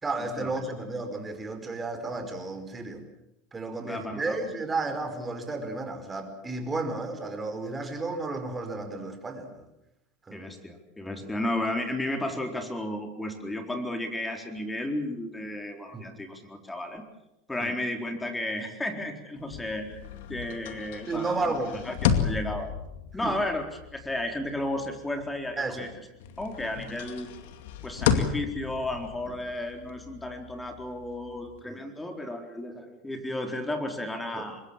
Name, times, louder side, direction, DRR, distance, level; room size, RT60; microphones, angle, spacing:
voice 1, 0.0-3.0 3.5-9.7 10.3-10.4 11.2-11.3 15.9-16.1 17.6-17.7 21.1-21.9 23.2-23.4 25.6-25.9 29.3-29.4 31.7-31.8 34.3-34.5, right 3 dB, 20° right, 6 dB, 4.9 m, -33 dB
voice 2, 3.8-4.4 10.3-17.0 17.5-20.0 20.3-21.5 21.9-22.7 23.1-23.6 23.9-25.9 26.4-27.3 27.8-34.6, left 1 dB, 10° left, 5 dB, 4.1 m, -33 dB
sound 1, 19.4-25.9 26.2-31.6, left 7 dB, 70° left, 2.3 m, -33 dB
24.0 x 21.0 x 7.4 m, 0.90 s
hypercardioid pair, 95°, 0 cm